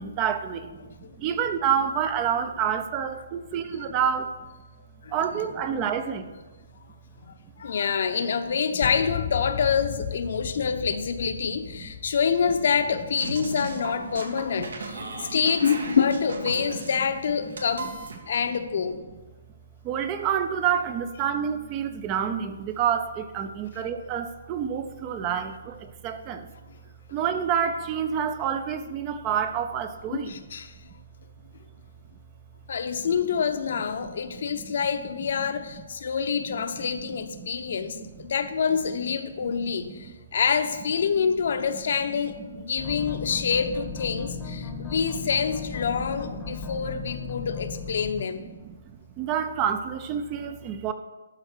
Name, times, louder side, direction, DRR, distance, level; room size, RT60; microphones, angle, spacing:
voice 1, 0.0-0.7 1.0-4.3 5.1-6.3 19.8-26.5 27.1-30.3 34.0-34.7 37.4-37.5 37.9-38.1 39.4-39.7 40.0-40.1 44.7-44.8 46.6-47.0 47.4-47.5 48.6-48.8 49.2-50.9, right 8 dB, 20° right, 10 dB, 0.5 m, -28 dB
voice 2, 0.8-1.2 5.0-5.4 7.2-17.9 18.3-19.0 30.1-30.7 32.7-48.5, left 6 dB, 60° left, 8 dB, 0.8 m, -27 dB
sound 1, 8.8-14.2, left 11 dB, 35° left, 0.3 m, -37 dB
sound 2, 13.2-18.2, right 3 dB, 85° right, 1.6 m, -37 dB
sound 3, 42.8-48.2, left 6 dB, 10° left, 0.9 m, -36 dB
12.0 x 4.4 x 6.6 m, 1.2 s
hypercardioid pair, 165°, 0 cm